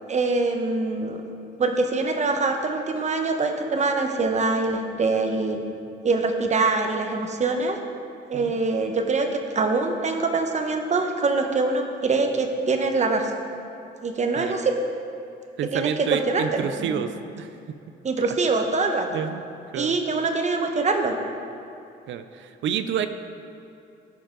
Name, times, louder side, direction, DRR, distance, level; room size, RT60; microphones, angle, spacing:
voice 1, 0.1-1.2 1.6-5.6 6.0-7.8 8.3-13.3 14.0-14.7 15.7-17.0 18.0-19.2 19.7-21.1, right 3 dB, 35° right, 5 dB, 1.0 m, -24 dB
voice 2, 15.6-17.5 19.1-19.4 19.7-19.9 22.1-23.1, right 8 dB, 70° right, 10 dB, 0.5 m, -29 dB
13.0 x 5.3 x 3.8 m, 2.7 s
cardioid pair, 90°, 20 cm